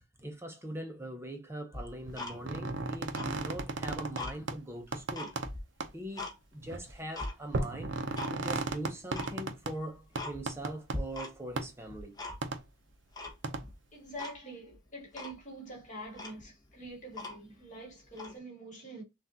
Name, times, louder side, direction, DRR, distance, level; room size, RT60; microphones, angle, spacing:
voice 1, 0.2-5.3 5.9-8.0 8.3-12.2, right 1 dB, 15° right, 0.7 m, -41 dB
Tick-tock, 1.7-2.7 3.1-4.4 4.8-6.4 6.7-7.3 7.8-8.3 8.6-8.7 9.1-9.3 9.7-9.8 10.1-10.7 10.9-11.6 11.8-12.6 13.2-13.7 14.2-14.4 14.7-14.8 15.1-15.4 15.9-16.0 16.1-17.6 18.1-18.4, left 2 dB, 20° left, 1.0 m, -41 dB
sound 1, 2.1-4.2 4.5-4.6 4.9-5.5 5.8-5.9 6.6-6.8 7.5-9.7 10.2-11.0 11.6-11.7 12.4-12.6 13.4-13.6, right 3 dB, 65° right, 0.6 m, -34 dB
voice 2, 13.9-19.0, right 1 dB, 40° left, 1.8 m, -45 dB
5.7 x 2.5 x 2.7 m
head